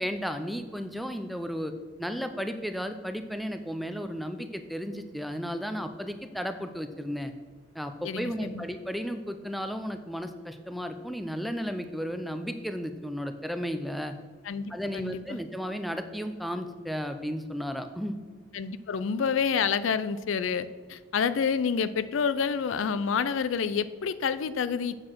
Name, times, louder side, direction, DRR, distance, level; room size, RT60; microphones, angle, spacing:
voice 1, 0.0-1.7 2.0-7.3 7.7-14.1 14.7-18.2, equal, ahead, 7 dB, 0.5 m, -34 dB
voice 2, 8.0-8.6 14.4-15.4 18.5-25.0, left 6 dB, 80° left, 15 dB, 0.4 m, -28 dB
8.3 x 6.6 x 6.0 m, 1.4 s
head